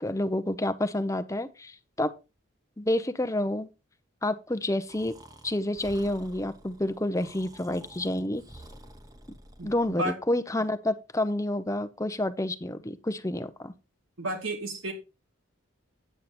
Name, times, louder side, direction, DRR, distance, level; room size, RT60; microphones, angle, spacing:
voice 1, 0.0-2.1 2.8-3.7 4.2-5.1 5.4-8.4 9.6-13.7, left 1 dB, 15° left, 11 dB, 0.8 m, -29 dB
Breathing, 4.9-10.0, right 1 dB, 20° right, 1.0 m, -50 dB
voice 2, 9.6-10.2 14.2-14.9, right 1 dB, 80° right, 3 dB, 2.7 m, -32 dB
9.3 x 8.3 x 4.3 m, 0.28 s
head